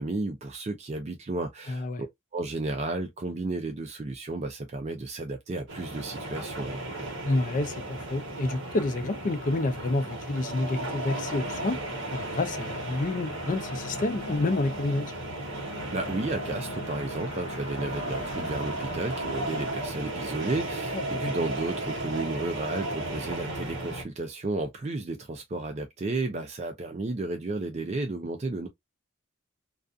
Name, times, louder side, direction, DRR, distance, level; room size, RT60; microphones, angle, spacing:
voice 1, 0.0-2.1 2.3-6.8 15.9-28.7, right 2 dB, 35° right, 0.4 m, -33 dB
voice 2, 1.7-2.0 7.2-11.8 12.1-15.1 20.9-21.3, left 2 dB, 40° left, 0.4 m, -29 dB
sound 1, 5.7-24.0, right 2 dB, 70° right, 1.0 m, -35 dB
sound 2, 11.0-19.7, left 2 dB, 70° left, 1.0 m, -41 dB
2.4 x 2.3 x 2.4 m
head